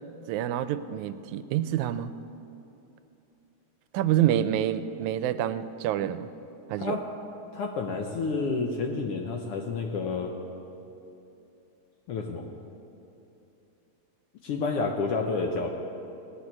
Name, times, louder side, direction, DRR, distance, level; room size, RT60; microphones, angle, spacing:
voice 1, 0.3-2.1 3.9-6.3 6.7-7.0, right 11 dB, 85° right, 13 dB, 2.0 m, -27 dB
voice 2, 7.5-10.4 12.1-12.5 14.4-15.7, left 4 dB, 70° left, 2 dB, 1.5 m, -29 dB
17.5 x 6.0 x 9.7 m, 2.8 s
omnidirectional pair, 3.3 m